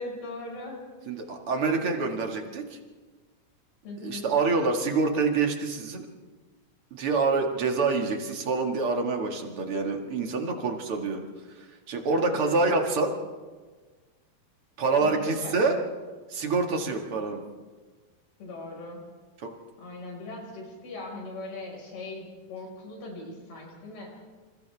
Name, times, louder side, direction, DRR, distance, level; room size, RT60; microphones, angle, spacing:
voice 1, 0.0-1.3 3.8-4.3 12.2-12.5 15.0-15.7 18.4-19.0 19.8-24.1, left 2 dB, 85° left, -1 dB, 7.4 m, -39 dB
voice 2, 1.1-2.8 4.0-6.1 6.9-11.2 11.6-13.1 14.8-15.7 16.3-17.4 19.4-19.5, right 4 dB, 40° right, 2 dB, 2.5 m, -26 dB
29.0 x 28.5 x 3.6 m, 1.4 s
omnidirectional pair, 4.4 m